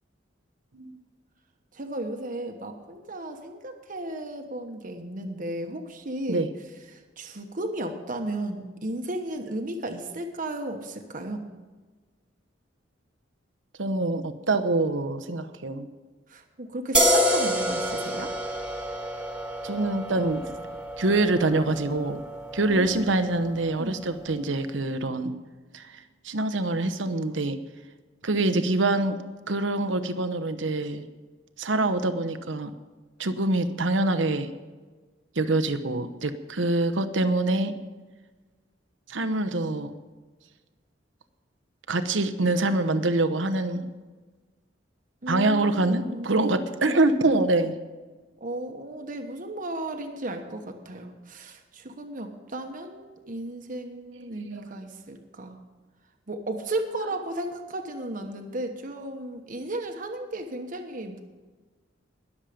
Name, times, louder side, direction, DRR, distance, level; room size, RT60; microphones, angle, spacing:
voice 1, 1.7-6.5 6.9-11.4 16.3-18.3 22.7-23.1 23.8-24.0 45.2-46.7 48.4-55.6 56.3-61.2, right 1 dB, 45° right, 4 dB, 1.2 m, -34 dB
voice 2, 13.8-15.9 19.6-20.5 21.0-22.2 22.5-25.4 25.7-25.9 26.2-27.6 28.2-29.2 29.5-31.1 31.6-32.7 33.2-34.5 35.4-37.7 39.1-39.9 41.9-43.9 45.3-47.7 54.2-54.6, right 2 dB, 80° right, 10 dB, 1.0 m, -25 dB
sound 1, 16.9-24.2, equal, 5° right, 1.7 m, -28 dB
21.0 x 7.4 x 5.1 m, 1.3 s
head